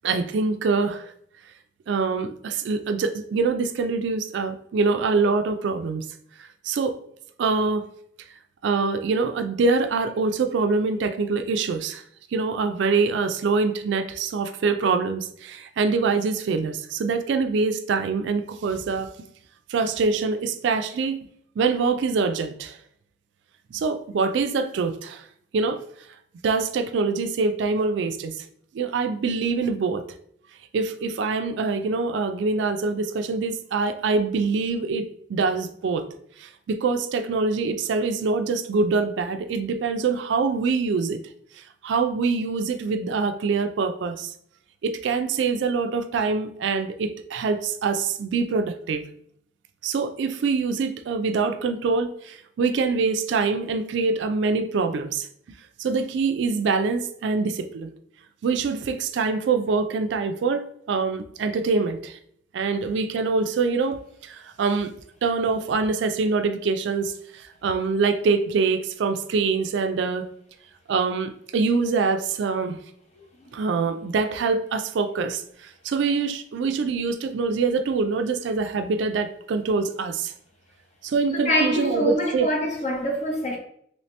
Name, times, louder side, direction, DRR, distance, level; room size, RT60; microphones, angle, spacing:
voice 1, 0.0-1.1 1.9-6.1 6.4-7.0 7.4-7.8 8.6-12.0 12.3-19.1 19.7-21.2 21.6-22.8 23.7-25.3 25.5-25.8 26.4-28.4 28.7-30.0 30.7-36.1 36.4-41.2 41.6-44.3 44.8-49.0 49.8-55.3 55.8-57.9 58.4-62.2 62.5-64.9 65.2-70.3 70.9-72.8 73.5-80.3 81.0-82.5, right 4 dB, 70° right, 0.3 m, -24 dB
voice 2, 81.5-83.6, equal, 35° left, 0.7 m, -24 dB
3.0 x 2.8 x 3.2 m
head